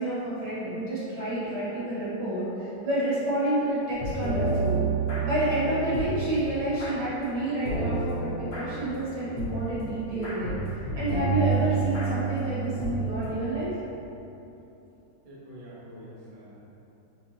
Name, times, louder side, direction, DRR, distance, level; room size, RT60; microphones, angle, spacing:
voice 1, 0.0-4.8 5.2-13.7, right 1 dB, 65° right, -10 dB, 2.1 m, -29 dB
sound 1, 3.9-13.5, right 4 dB, 60° left, 1.4 m, -30 dB
voice 2, 15.2-16.7, equal, 40° right, -8 dB, 0.8 m, -46 dB
5.3 x 3.4 x 2.8 m, 2.9 s
omnidirectional pair, 2.0 m